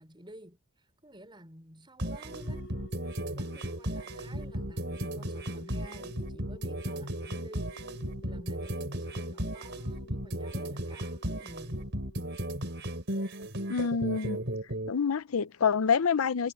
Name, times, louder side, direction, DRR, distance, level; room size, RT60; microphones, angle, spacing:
voice 1, 0.0-7.8 8.2-12.0, right 1 dB, 20° right, 4.8 m, -52 dB
sound 1, 2.0-14.9, right 1 dB, 55° right, 4.9 m, -35 dB
sound 2, 2.3-12.9, left 1 dB, 55° left, 7.4 m, -51 dB
voice 2, 13.7-14.4 14.9-16.5, left 6 dB, 80° left, 0.6 m, -27 dB
head